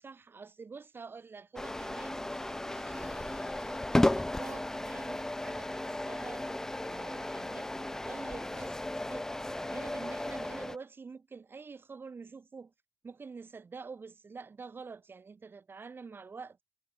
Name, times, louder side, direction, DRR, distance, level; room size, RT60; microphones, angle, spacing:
voice 1, 0.0-6.5 6.8-9.3 9.6-12.7 13.0-16.6, right 5 dB, 30° right, 7.3 m, -47 dB
sound 1, 1.6-10.8, left 1 dB, 5° left, 0.4 m, -34 dB
cardioid pair, 100°, 7 cm